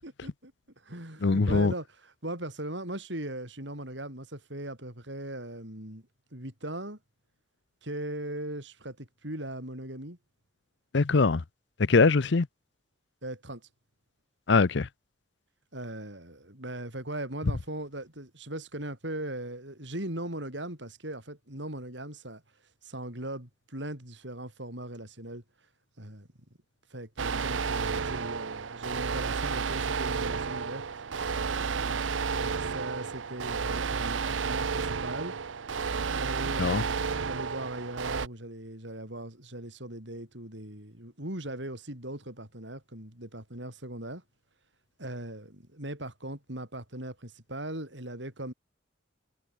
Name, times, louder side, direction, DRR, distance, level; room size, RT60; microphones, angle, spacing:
voice 1, 0.0-0.5 0.8-1.9 2.2-6.0 6.3-7.0 7.8-10.2 12.0-12.1 13.2-13.6 15.7-22.4 22.8-25.4 26.0-26.3 26.9-30.8 31.7-35.3 36.1-44.2 45.0-48.5, right 1 dB, 65° right, 7.5 m, -39 dB
voice 2, 1.2-1.7 10.9-11.4 11.8-12.5 14.5-14.9 36.6-36.8, left 4 dB, 65° left, 0.7 m, -22 dB
sound 1, 27.2-38.3, right 5 dB, 85° right, 0.7 m, -31 dB
head